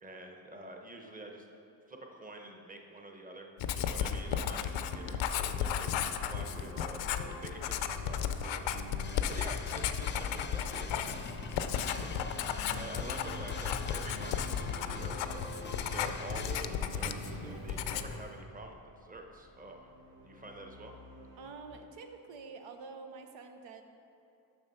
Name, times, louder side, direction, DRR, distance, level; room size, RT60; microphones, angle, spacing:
voice 1, 0.0-1.5 1.9-11.6 11.8-19.9 20.2-21.0, right 2 dB, 20° right, 3 dB, 1.0 m, -48 dB
Writing, 3.6-17.4 17.7-18.2, left 9 dB, 85° left, 0.6 m, -34 dB
sound 1, 4.2-21.5, equal, 55° right, 1.8 m, -47 dB
sound 2, 9.0-16.6, left 4 dB, 25° left, 0.5 m, -44 dB
voice 2, 21.4-23.8, right 4 dB, 90° right, 5 dB, 0.8 m, -47 dB
7.0 x 6.2 x 5.6 m, 2.8 s
cardioid pair, 80°, 44 cm